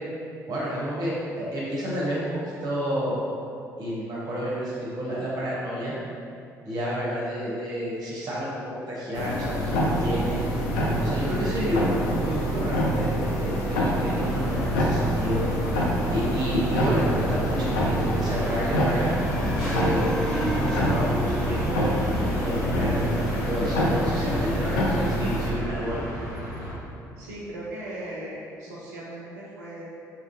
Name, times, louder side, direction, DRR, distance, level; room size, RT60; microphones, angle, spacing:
voice 1, 0.5-3.2 3.8-5.9 6.6-10.4 11.0-15.4 16.1-19.1 19.7-21.1 21.4-26.0, equal, 45° right, -6 dB, 0.7 m, -30 dB
sound 1, 9.1-25.5, equal, 70° left, 0.4 m, -26 dB
sound 2, 10.5-26.7, equal, 55° left, 1.0 m, -35 dB
sound 3, 18.8-22.9, right 1 dB, 5° left, 0.3 m, -33 dB
voice 2, 27.2-29.8, right 1 dB, 75° right, -6 dB, 0.4 m, -38 dB
2.9 x 2.4 x 2.5 m, 2.6 s
figure-of-eight pair, 50°, 9 cm